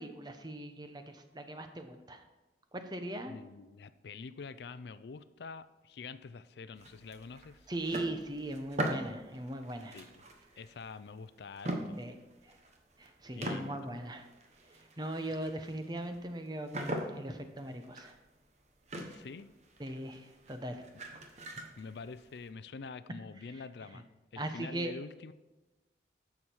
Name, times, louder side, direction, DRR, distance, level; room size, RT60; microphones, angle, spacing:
voice 1, 0.0-2.2 2.7-3.3 7.7-10.0 12.0-12.1 12.4-12.6 13.0-14.2 15.0-18.2 19.8-20.9 21.4-21.6 23.9-24.0 24.4-24.9, right 1 dB, 25° right, 7 dB, 0.8 m, -39 dB
voice 2, 3.2-7.7 9.9-10.2 10.6-12.0 13.3-14.0 19.1-19.5 21.8-24.0 24.3-25.3, left 4 dB, 70° left, 14 dB, 0.4 m, -46 dB
sound 1, 6.8-11.2 11.6-13.1 13.4-22.5, right 1 dB, 40° right, 1.1 m, -42 dB
11.0 x 7.2 x 4.5 m, 1.1 s
head